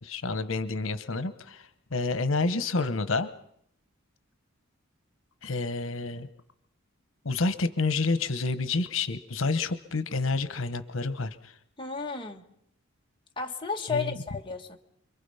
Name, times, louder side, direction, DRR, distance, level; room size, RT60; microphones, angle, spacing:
voice 1, 0.0-3.3 5.4-6.3 7.2-11.5 13.9-14.2, left 3 dB, 85° left, 1.1 m, -29 dB
voice 2, 11.8-12.4 13.4-14.8, left 5 dB, 25° left, 1.8 m, -33 dB
28.5 x 23.0 x 5.7 m
head